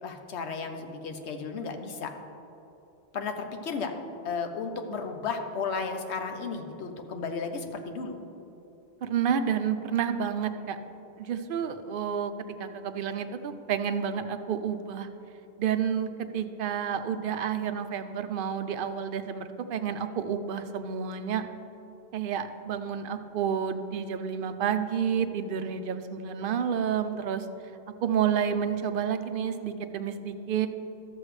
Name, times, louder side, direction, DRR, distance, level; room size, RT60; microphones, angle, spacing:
voice 1, 0.0-2.1 3.1-3.9 4.2-8.2, left 5 dB, 75° left, 6 dB, 1.1 m, -34 dB
voice 2, 9.0-10.8 11.2-12.3 12.6-15.1 15.6-21.4 22.1-27.5 28.0-30.7, right 8 dB, 60° right, 9 dB, 0.6 m, -30 dB
13.0 x 7.8 x 3.2 m, 2.9 s
omnidirectional pair, 1.1 m